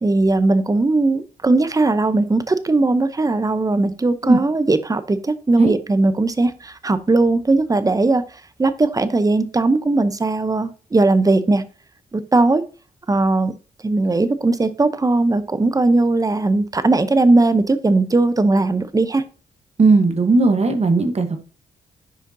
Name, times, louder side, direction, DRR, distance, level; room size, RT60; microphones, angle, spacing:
voice 1, 0.0-8.2 8.6-11.7 12.1-12.6 13.1-13.5 13.8-19.2, right 2 dB, 20° right, 13 dB, 0.7 m, -18 dB
voice 2, 19.8-21.4, right 3 dB, 45° right, 7 dB, 1.2 m, -16 dB
9.9 x 4.9 x 2.7 m, 0.36 s
cardioid pair, 65°, 16 cm